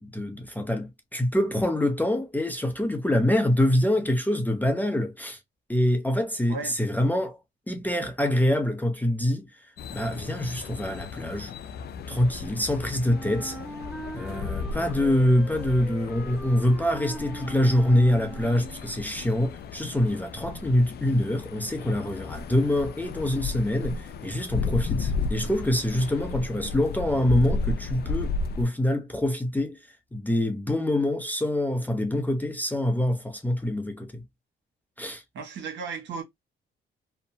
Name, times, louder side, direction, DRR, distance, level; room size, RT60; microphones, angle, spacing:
voice 1, 0.0-5.4 5.7-7.4 7.7-9.5 9.9-11.5 12.1-13.6 14.1-29.8 30.1-34.2 35.0-35.2, left 1 dB, 10° left, 0.6 m, -25 dB
sound 1, 9.8-28.6, left 4 dB, 55° left, 0.4 m, -34 dB
Wind instrument woodwind instrument, 13.1-18.9, right 2 dB, 5° right, 1.0 m, -41 dB
voice 2, 35.3-36.2, right 5 dB, 65° right, 1.3 m, -34 dB
2.7 x 2.1 x 2.6 m
cardioid pair, 90°, 20 cm